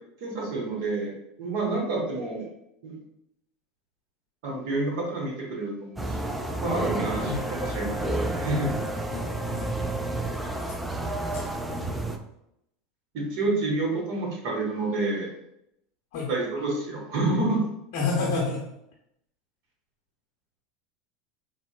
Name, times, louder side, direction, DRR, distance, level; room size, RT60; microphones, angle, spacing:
voice 1, 0.2-1.1 1.4-2.5 2.8-3.0 4.4-8.7 13.1-15.3 16.3-17.6, right 2 dB, 65° right, -1 dB, 1.0 m, -29 dB
sound 1, 6.0-12.2, right 2 dB, 5° right, 0.3 m, -30 dB
voice 2, 9.1-9.7 11.3-11.4 16.1-16.3 17.9-18.6, left 4 dB, 65° left, -4 dB, 0.6 m, -29 dB
3.8 x 2.0 x 2.3 m, 0.79 s
hypercardioid pair, 85°, 0 cm